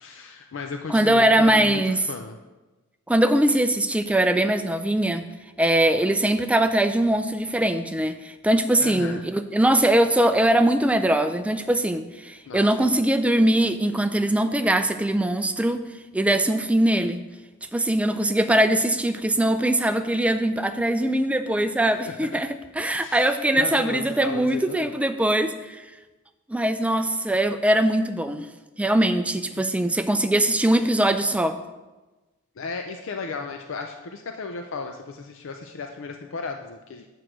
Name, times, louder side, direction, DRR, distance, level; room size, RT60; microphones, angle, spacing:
voice 1, 0.0-2.4 8.8-9.3 12.5-12.7 22.1-22.4 22.9-24.9 29.6-29.7 32.6-37.1, left 4 dB, 60° left, 5 dB, 0.5 m, -35 dB
voice 2, 0.9-2.0 3.1-5.3 5.6-15.9 16.1-17.2 17.7-22.5 22.8-25.8 26.5-28.5 28.8-31.6, right 1 dB, 5° right, 8 dB, 0.4 m, -21 dB
7.9 x 4.6 x 6.2 m, 1.1 s
head